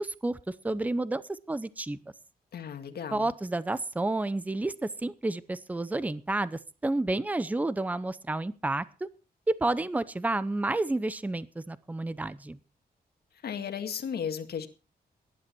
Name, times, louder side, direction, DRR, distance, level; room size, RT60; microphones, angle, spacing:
voice 1, 0.0-2.0 3.1-8.9 9.5-12.6, right 2 dB, 10° right, 16 dB, 0.6 m, -30 dB
voice 2, 2.5-3.3 13.4-14.7, left 7 dB, 80° left, 7 dB, 2.0 m, -35 dB
18.0 x 11.0 x 4.5 m, 0.34 s
wide cardioid pair, 155°, 16 cm